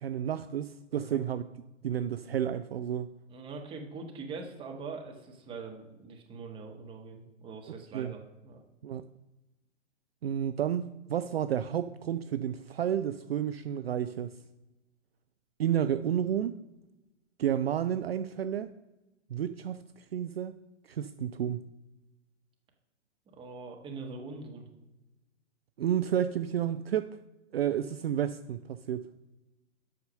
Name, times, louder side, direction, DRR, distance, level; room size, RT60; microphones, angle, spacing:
voice 1, 0.0-1.4 1.8-3.1 7.9-8.1 8.8-9.1 10.2-14.3 15.6-16.5 17.4-18.7 19.3-20.6 20.9-21.6 25.8-27.1 27.5-29.1, right 10 dB, 55° right, 11 dB, 0.5 m, -31 dB
voice 2, 3.3-8.6 23.3-24.6, right 4 dB, 15° right, 1 dB, 1.3 m, -43 dB
8.4 x 5.8 x 6.5 m, 1.0 s
figure-of-eight pair, 115°, 36 cm